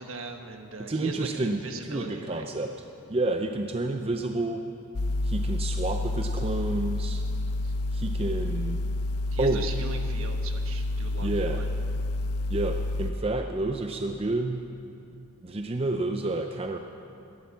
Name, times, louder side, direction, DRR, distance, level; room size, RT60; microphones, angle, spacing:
voice 1, 0.0-2.4 7.6-7.7 9.3-11.7, right 3 dB, 65° right, 5 dB, 1.2 m, -39 dB
voice 2, 0.9-2.7 3.1-4.6 5.2-7.2 7.9-8.8 9.4-9.6 11.2-11.7 12.5-14.6 15.4-16.8, right 2 dB, 25° right, 5 dB, 0.5 m, -29 dB
sound 1, 4.9-13.1, left 2 dB, 85° left, 0.6 m, -29 dB
13.0 x 11.0 x 7.2 m, 2.5 s
head